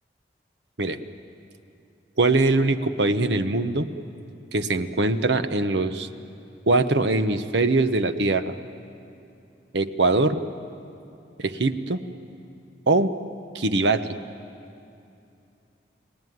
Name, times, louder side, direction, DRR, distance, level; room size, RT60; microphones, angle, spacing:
voice 1, 2.2-3.9 4.5-6.1 6.7-8.6 9.7-10.4 11.4-12.0 12.9-13.1 13.5-14.1, right 2 dB, 80° right, 9 dB, 1.1 m, -22 dB
30.0 x 18.5 x 9.5 m, 2.7 s
head